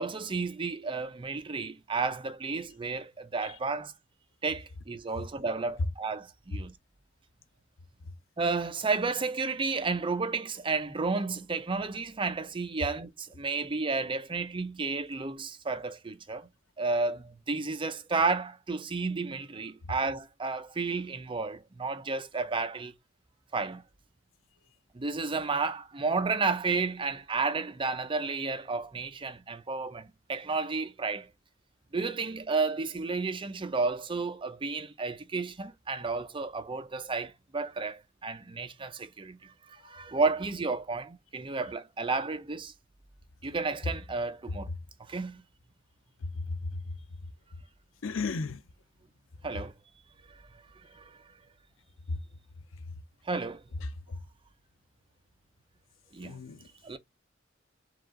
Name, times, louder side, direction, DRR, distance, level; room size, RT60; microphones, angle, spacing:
voice 1, 0.0-3.9 4.4-6.7 8.4-16.5 16.8-22.9 23.5-23.8 24.9-31.3 31.9-39.5 39.8-42.7 43.4-44.7 45.1-45.4 49.4-49.7 50.9-51.2 53.3-53.6 56.1-56.4 56.8-57.0, right 4 dB, 25° right, 0.6 m, -32 dB
voice 2, 46.3-46.8 48.0-48.6 52.1-52.2 54.1-54.2 56.2-56.7, left 3 dB, 90° left, 0.5 m, -35 dB
4.8 x 2.5 x 3.7 m
head